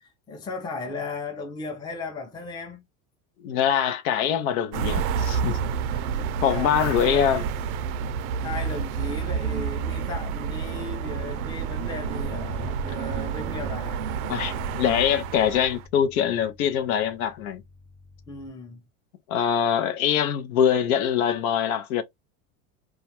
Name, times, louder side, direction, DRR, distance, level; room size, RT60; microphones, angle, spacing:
voice 1, 0.0-2.9 5.8-7.4 8.4-14.0 18.3-18.8, left 3 dB, 10° left, 0.5 m, -36 dB
voice 2, 3.4-5.6 6.4-7.5 14.3-17.6 19.3-22.0, left 9 dB, 85° left, 0.7 m, -23 dB
sound 1, 4.7-15.9, right 7 dB, 85° right, 0.5 m, -29 dB
Bass guitar, 12.2-18.5, left 2 dB, 65° left, 0.9 m, -43 dB
2.3 x 2.2 x 2.8 m
supercardioid pair, 105°, 42 cm